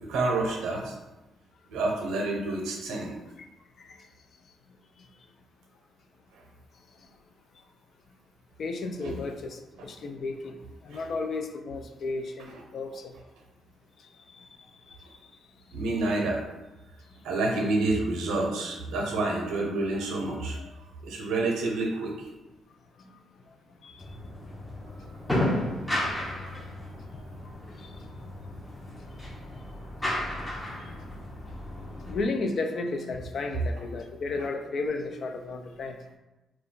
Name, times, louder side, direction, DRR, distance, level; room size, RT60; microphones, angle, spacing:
voice 1, 0.0-0.9 1.7-3.1 6.3-6.4 9.0-9.1 10.9-11.0 12.5-12.6 15.7-16.4 17.2-20.6 21.0-22.3, right 2 dB, 90° right, 0 dB, 0.6 m, -28 dB
voice 2, 8.6-13.1 14.3-14.5 14.9-15.1 23.0-23.2 23.8-24.1 27.4-27.9 32.0-36.0, left 3 dB, 55° left, 5 dB, 0.3 m, -34 dB
sound 1, 24.0-32.2, left 1 dB, 10° left, 0.7 m, -33 dB
2.3 x 2.2 x 3.7 m, 1.0 s
cardioid pair, 90°, 0 cm